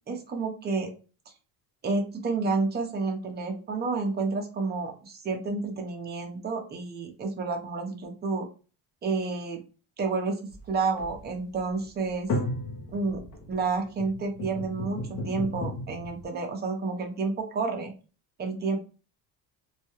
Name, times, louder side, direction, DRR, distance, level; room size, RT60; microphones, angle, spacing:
voice 1, 0.1-0.9 1.8-8.5 9.0-9.6 10.0-12.3 12.9-17.9 18.4-18.8, right 4 dB, 25° right, 4 dB, 0.5 m, -30 dB
sound 1, 10.5-16.3, left 1 dB, 50° left, 0.7 m, -35 dB
2.3 x 2.1 x 2.9 m, 0.35 s
cardioid pair, 135°, 40 cm